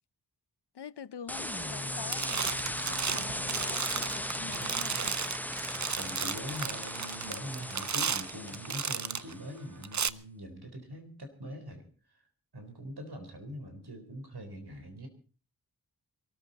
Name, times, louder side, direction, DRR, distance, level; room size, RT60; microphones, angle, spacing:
voice 1, 0.7-5.2, left 7 dB, 80° left, 0.7 m, -45 dB
sound 1, 1.3-9.5, left 1 dB, 5° left, 0.7 m, -37 dB
sound 2, 1.6-1.8 2.1-9.3 9.8-10.1, right 6 dB, 45° right, 0.7 m, -34 dB
voice 2, 4.6-5.1 5.7-11.8 12.5-15.1, equal, 70° right, 4.0 m, -43 dB
23.0 x 13.5 x 4.1 m
wide cardioid pair, 50°, 40 cm